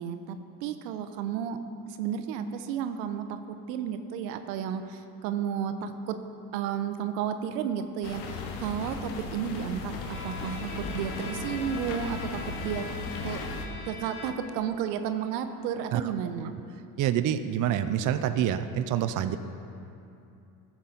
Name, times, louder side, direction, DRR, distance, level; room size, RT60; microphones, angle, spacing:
voice 1, 0.0-1.6 1.9-6.2 6.5-12.8 13.2-13.4 13.9-16.5, right 8 dB, 85° right, 9 dB, 0.8 m, -32 dB
sound 1, 8.0-13.7, left 4 dB, 80° left, 1.2 m, -37 dB
Bowed string instrument, 10.0-14.7, left 4 dB, 40° left, 1.6 m, -43 dB
voice 2, 17.0-19.4, right 10 dB, 40° right, 10 dB, 0.5 m, -27 dB
13.0 x 7.4 x 3.8 m, 2.7 s
supercardioid pair, 85°, 49 cm